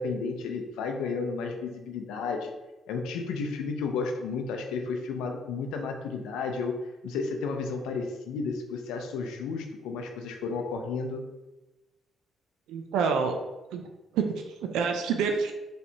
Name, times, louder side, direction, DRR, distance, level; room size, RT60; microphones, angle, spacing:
voice 1, 0.0-2.5 2.9-6.7 7.0-11.2, left 4 dB, 85° left, 4 dB, 0.4 m, -32 dB
voice 2, 12.7-13.4 13.7-13.8 14.1-15.5, right 5 dB, 85° right, 4 dB, 0.4 m, -27 dB
4.2 x 3.2 x 2.8 m, 1.1 s
supercardioid pair, 70°, 0 cm